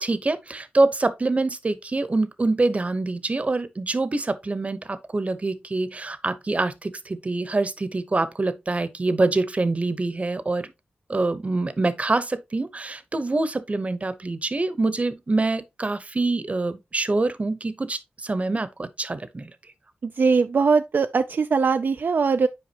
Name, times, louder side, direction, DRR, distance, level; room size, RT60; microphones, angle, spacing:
voice 1, 0.0-10.7 11.1-19.5, right 2 dB, 35° right, 0.8 m, -25 dB
voice 2, 20.0-22.5, right 5 dB, 65° right, 0.4 m, -21 dB
8.8 x 4.9 x 2.9 m
wide cardioid pair, 70°, 4 cm